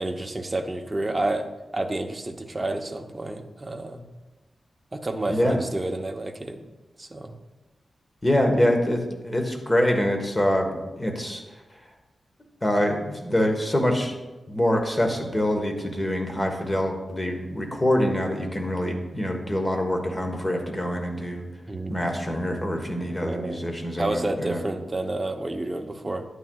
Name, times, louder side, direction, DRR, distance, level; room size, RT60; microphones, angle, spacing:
voice 1, 0.0-1.5 1.7-4.0 4.9-6.6 7.0-7.3 21.7-21.9 23.2-23.6 24.0-26.3, right 2 dB, 25° right, 5 dB, 0.7 m, -29 dB
voice 2, 8.2-10.7 11.0-11.4 12.6-14.1 14.5-21.5 21.9-24.6, left 1 dB, 20° left, 3 dB, 1.3 m, -25 dB
11.0 x 9.0 x 2.3 m, 1.1 s
wide cardioid pair, 105°, 0 cm